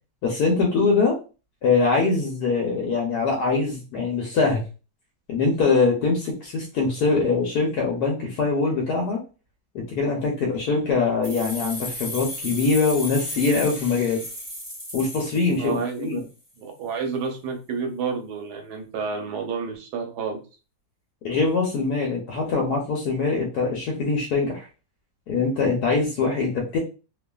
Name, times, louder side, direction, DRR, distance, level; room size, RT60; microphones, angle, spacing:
voice 1, 0.2-1.1 1.6-4.6 5.3-9.2 9.7-14.2 14.9-16.2 21.2-24.7 25.3-26.8, left 4 dB, 70° left, -1 dB, 1.1 m, -23 dB
sound 1, 11.2-16.0, left 1 dB, 20° right, 0.6 m, -35 dB
voice 2, 15.6-16.3 16.6-20.4, right 5 dB, 70° right, 3 dB, 1.2 m, -30 dB
2.8 x 2.4 x 2.2 m, 0.33 s
omnidirectional pair, 1.9 m